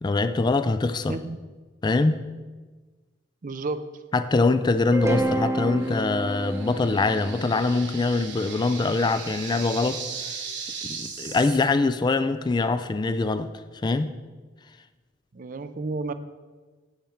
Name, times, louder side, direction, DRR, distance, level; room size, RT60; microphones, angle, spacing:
voice 1, 0.0-1.2 1.8-2.2 4.1-10.3 10.8-13.5 13.8-14.1, left 3 dB, 25° left, 11 dB, 0.3 m, -23 dB
voice 2, 3.4-4.0 15.3-16.1, right 3 dB, 45° right, 12 dB, 0.5 m, -31 dB
sound 1, 4.9-9.1, right 1 dB, 15° right, 0.8 m, -30 dB
sound 2, 5.8-11.7, right 6 dB, 65° right, 1.5 m, -38 dB
10.0 x 7.2 x 4.5 m, 1.3 s
head